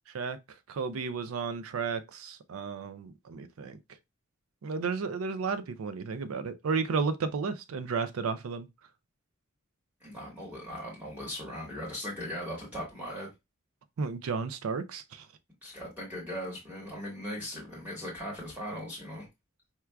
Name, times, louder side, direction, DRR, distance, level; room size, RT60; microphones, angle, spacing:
voice 1, 0.7-3.8 4.6-8.7 14.0-15.3, right 5 dB, 90° right, 0.4 m, -33 dB
voice 2, 10.0-13.3 15.6-19.3, equal, 10° right, 1.1 m, -39 dB
4.4 x 2.4 x 2.2 m
head